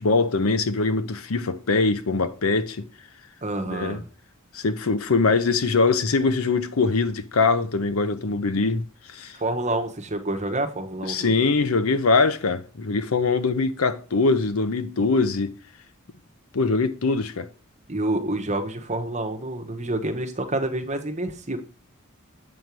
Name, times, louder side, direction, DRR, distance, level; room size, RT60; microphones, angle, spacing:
voice 1, 0.0-2.8 3.7-4.0 4.5-8.8 9.1-9.4 11.1-15.5 16.5-17.5, left 3 dB, 75° left, 0.7 m, -22 dB
voice 2, 3.4-4.0 9.3-11.3 17.9-21.6, right 2 dB, 30° right, 1.1 m, -28 dB
7.9 x 5.4 x 4.6 m
head